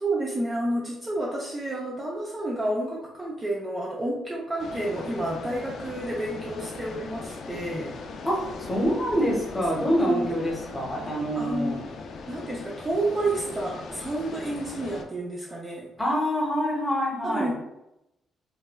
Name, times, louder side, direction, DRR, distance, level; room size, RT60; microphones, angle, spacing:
voice 1, 0.0-8.0 9.9-10.3 11.4-11.8 12.3-15.9 17.2-17.5, right 1 dB, 25° right, -4 dB, 0.5 m, -30 dB
sound 1, 4.6-15.0, left 4 dB, 65° left, 0.3 m, -39 dB
voice 2, 8.2-11.8 16.0-17.5, equal, 10° left, -3 dB, 0.9 m, -26 dB
3.1 x 2.2 x 2.2 m, 0.86 s
cardioid pair, 90°, 0 cm